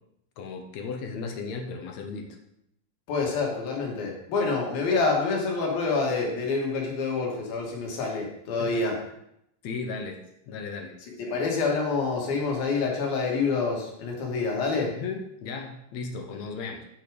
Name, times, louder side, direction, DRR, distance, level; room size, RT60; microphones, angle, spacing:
voice 1, 0.4-2.4 8.6-8.7 9.6-11.0 14.9-16.8, left 4 dB, 65° left, 4 dB, 1.9 m, -35 dB
voice 2, 3.1-9.0 11.0-14.9, left 4 dB, 85° left, 0 dB, 3.7 m, -27 dB
8.5 x 6.5 x 5.1 m, 0.78 s
omnidirectional pair, 4.1 m